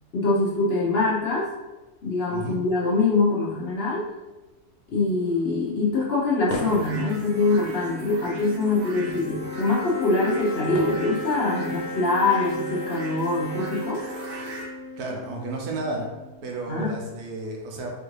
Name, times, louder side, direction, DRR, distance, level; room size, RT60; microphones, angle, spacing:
voice 1, 0.1-1.5 2.0-4.0 4.9-14.0 16.7-16.9, left 3 dB, 50° left, -6 dB, 0.8 m, -24 dB
sound 1, 5.2-11.7, left 2 dB, 85° left, 1.3 m, -41 dB
sound 2, 6.6-14.7, right 2 dB, 60° right, 0.6 m, -41 dB
sound 3, 7.1-16.5, left 1 dB, 65° left, 1.1 m, -37 dB
voice 2, 15.0-16.1 16.4-17.9, right 2 dB, 85° right, 0 dB, 1.2 m, -32 dB
4.3 x 2.5 x 3.1 m, 1.1 s
omnidirectional pair, 1.6 m